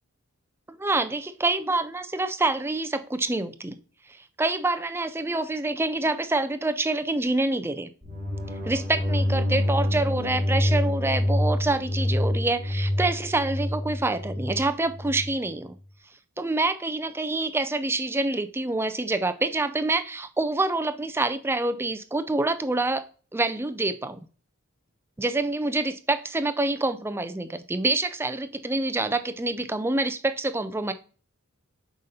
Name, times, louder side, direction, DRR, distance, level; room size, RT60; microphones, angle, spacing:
voice 1, 0.8-3.8 4.2-7.9 8.7-15.7 16.4-23.0 23.3-24.2 25.2-30.9, right 2 dB, 10° right, 10 dB, 0.4 m, -26 dB
sound 1, 8.0-15.3, left 1 dB, 35° right, 3.1 m, -26 dB
7.9 x 5.1 x 2.8 m, 0.39 s
head